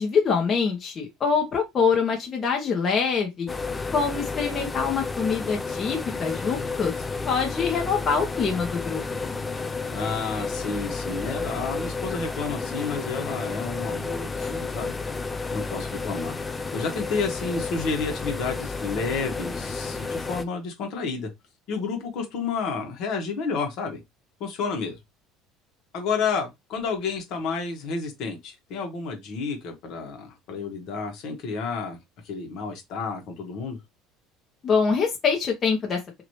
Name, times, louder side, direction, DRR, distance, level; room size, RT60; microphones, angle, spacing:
voice 1, 0.0-3.5 3.9-6.9 7.3-9.4 34.6-36.0, left 5 dB, 40° left, 1.1 m, -25 dB
sound 1, 3.5-20.5, left 4 dB, 20° left, 0.4 m, -31 dB
voice 2, 9.9-14.9 15.5-16.4 16.7-21.3 21.7-24.0 24.4-25.0 25.9-32.0 32.2-33.8, left 4 dB, 65° left, 1.3 m, -30 dB
2.9 x 2.7 x 3.1 m
supercardioid pair, 100°, 0 cm